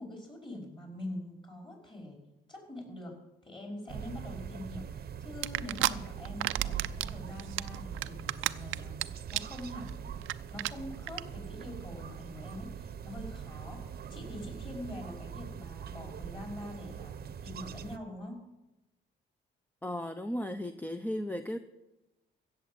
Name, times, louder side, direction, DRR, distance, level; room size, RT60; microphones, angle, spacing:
voice 1, 0.0-2.2 2.5-3.1 3.4-10.2 10.5-13.8 14.1-17.1 17.4-18.4, left 1 dB, 25° left, 1 dB, 5.4 m, -44 dB
sound 1, 3.9-18.0, right 8 dB, 50° right, 0.8 m, -42 dB
sound 2, 5.4-5.9 6.3-7.1 7.4-9.0 9.3-9.6 9.9-10.0 10.2-10.3 10.6-10.7 11.1-11.2, right 16 dB, 85° right, 0.5 m, -30 dB
voice 2, 19.8-21.6, left 1 dB, 10° left, 9 dB, 0.7 m, -35 dB
15.5 x 7.3 x 7.9 m, 0.99 s
cardioid pair, 90°, 20 cm